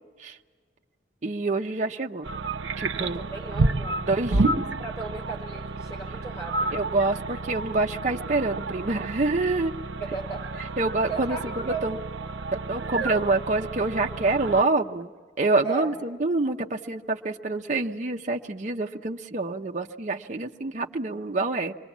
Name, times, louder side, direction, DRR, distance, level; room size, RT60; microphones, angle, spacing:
voice 1, 1.2-2.3 2.8-3.2 4.1-4.6 6.7-9.7 10.8-12.0 12.5-15.1 15.4-21.7, right 3 dB, 40° right, 2 dB, 0.6 m, -26 dB
sound 1, 2.2-14.6, right 3 dB, 85° right, 0.7 m, -30 dB
voice 2, 3.0-4.0 4.3-4.5 4.8-6.8 10.0-10.7 11.1-11.9 13.0-13.1 15.6-15.9, right 4 dB, 15° left, -1 dB, 5.0 m, -36 dB
26.0 x 22.5 x 7.2 m, 1.5 s
head